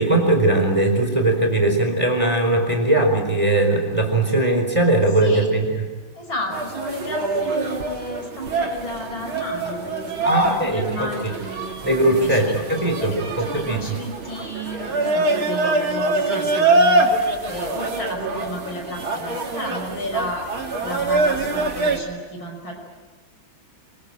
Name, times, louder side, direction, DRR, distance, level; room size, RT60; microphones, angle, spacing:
voice 1, 0.0-5.7 10.2-11.3 11.8-14.0, right 2 dB, 15° right, 3 dB, 4.4 m, -20 dB
voice 2, 5.2-5.5 6.1-11.7 12.2-22.7, equal, 75° left, 2 dB, 6.5 m, -33 dB
sound 1, 6.5-22.0, right 2 dB, 90° right, 3.7 m, -24 dB
26.0 x 22.0 x 9.0 m, 1.3 s
omnidirectional pair, 2.2 m